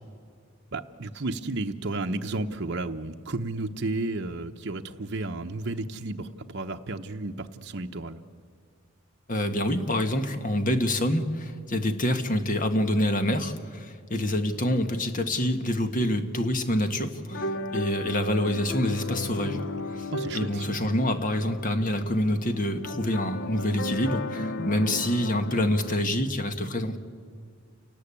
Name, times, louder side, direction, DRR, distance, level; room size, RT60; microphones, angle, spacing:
voice 1, 0.7-8.2 20.1-20.6, right 2 dB, 55° right, 3 dB, 0.9 m, -32 dB
voice 2, 9.3-27.0, left 1 dB, 40° left, 8 dB, 1.5 m, -27 dB
sound 1, 17.3-26.0, left 2 dB, 55° left, 0.8 m, -35 dB
28.5 x 18.5 x 8.4 m, 2.1 s
head